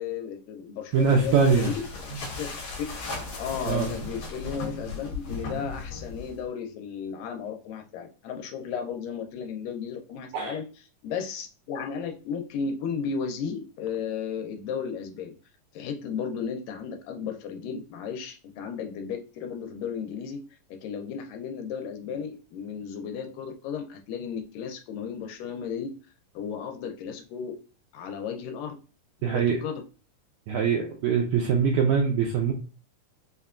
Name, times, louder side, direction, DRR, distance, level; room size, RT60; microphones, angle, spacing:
voice 1, 0.0-2.5 2.8-2.9 3.4-10.7 11.0-15.3 15.7-20.4 20.7-26.0 26.4-27.6 27.9-28.8 29.2-29.8, left 6 dB, 80° left, 5 dB, 2.1 m, -34 dB
sound 1, 0.9-6.5, left 3 dB, 65° left, 1.6 m, -37 dB
voice 2, 0.9-1.7 3.6-3.9 10.3-10.6 29.2-29.6 30.5-32.5, right 6 dB, 85° right, 1 dB, 1.6 m, -23 dB
5.4 x 2.2 x 2.3 m, 0.35 s
omnidirectional pair, 3.8 m